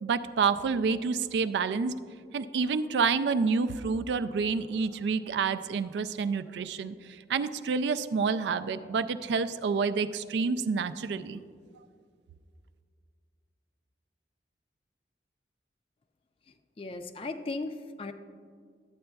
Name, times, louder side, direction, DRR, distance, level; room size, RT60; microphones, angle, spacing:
voice 1, 0.0-1.9 2.3-6.9 7.3-11.4, right 5 dB, 80° right, 12 dB, 0.3 m, -28 dB
voice 2, 16.8-18.1, left 3 dB, 30° left, 8 dB, 0.3 m, -36 dB
12.0 x 8.6 x 2.3 m, 2.1 s
head